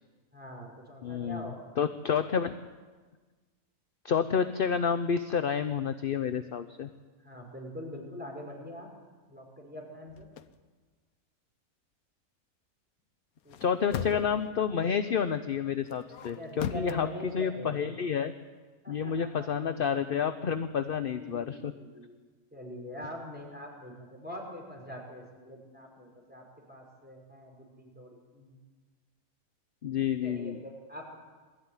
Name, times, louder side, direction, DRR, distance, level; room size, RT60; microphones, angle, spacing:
voice 1, 0.3-1.7 7.2-8.9 9.3-10.3 13.4-14.3 16.4-17.9 18.8-19.7 21.1-22.1 22.5-28.6 30.2-31.2, left 1 dB, 5° right, -1 dB, 5.6 m, -44 dB
voice 2, 1.0-2.5 4.0-6.9 13.6-18.3 18.9-21.7 29.8-30.6, left 7 dB, 45° left, 10 dB, 0.8 m, -29 dB
sound 1, 10.1-10.5 13.4-14.5 15.9-17.0, left 9 dB, 75° left, 1.3 m, -38 dB
22.0 x 13.5 x 9.7 m, 1.4 s
omnidirectional pair, 1.5 m